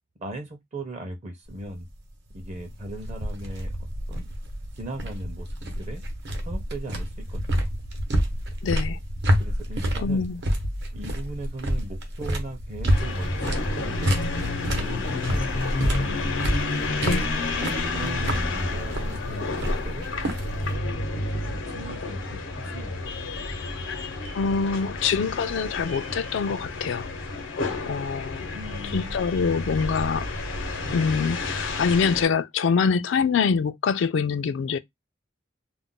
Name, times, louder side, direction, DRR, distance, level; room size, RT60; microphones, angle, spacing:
voice 1, 0.2-1.9 2.3-4.3 4.8-5.5 5.8-6.0 6.4-7.7 9.4-10.3 10.9-16.3 17.3-17.4 17.9-20.1 20.6-23.1 28.5-29.2, right 1 dB, 35° right, 0.6 m, -38 dB
sound 1, 1.5-20.8, equal, 65° right, 0.8 m, -29 dB
voice 2, 8.6-9.0 10.0-10.4 17.0-17.3 24.3-27.1 27.9-28.5 28.9-30.3 30.9-34.8, left 5 dB, 70° left, 0.3 m, -25 dB
sound 2, 12.9-32.3, left 3 dB, 90° left, 0.8 m, -30 dB
2.4 x 2.1 x 3.6 m
head